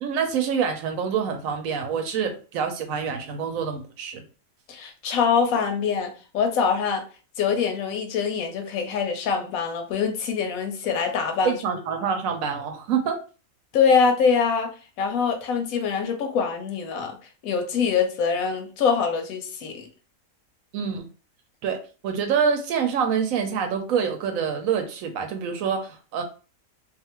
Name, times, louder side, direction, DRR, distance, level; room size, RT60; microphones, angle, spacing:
voice 1, 0.0-4.2 11.4-13.2 20.7-21.1 21.6-21.8 22.0-26.2, right 7 dB, 75° right, 5 dB, 1.0 m, -26 dB
voice 2, 4.7-7.0 7.4-11.6 13.7-14.7 15.0-17.2 17.4-19.9, left 6 dB, 80° left, 5 dB, 1.0 m, -24 dB
2.6 x 2.4 x 2.9 m, 0.36 s
omnidirectional pair, 1.5 m